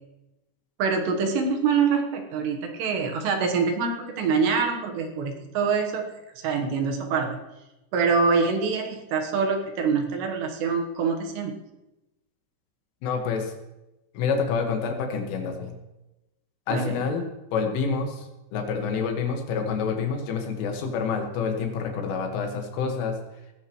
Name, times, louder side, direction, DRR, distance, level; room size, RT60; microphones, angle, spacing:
voice 1, 0.8-7.4 7.9-11.5 16.7-17.0, right 5 dB, 70° right, 3 dB, 3.1 m, -25 dB
voice 2, 13.0-13.5 14.2-15.7 16.7-17.3 17.5-18.2 18.5-23.2, left 5 dB, 80° left, 3 dB, 4.2 m, -27 dB
19.5 x 15.0 x 3.1 m, 0.97 s
omnidirectional pair, 5.6 m